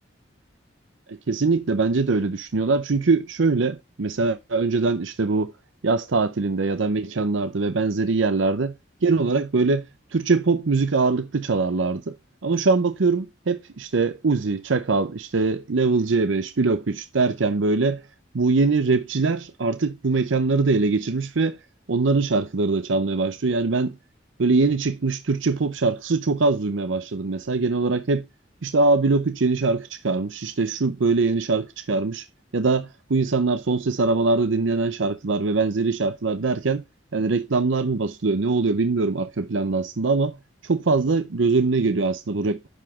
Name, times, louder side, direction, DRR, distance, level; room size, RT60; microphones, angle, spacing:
voice 1, 1.1-5.5 5.8-8.7 9.0-9.9 10.1-12.2 12.4-18.0 18.3-21.6 21.9-24.0 24.4-28.3 28.6-32.3 32.5-36.8 37.1-40.4 40.6-42.7, right 3 dB, 85° right, 0.7 m, -22 dB
11.0 x 4.9 x 3.6 m
head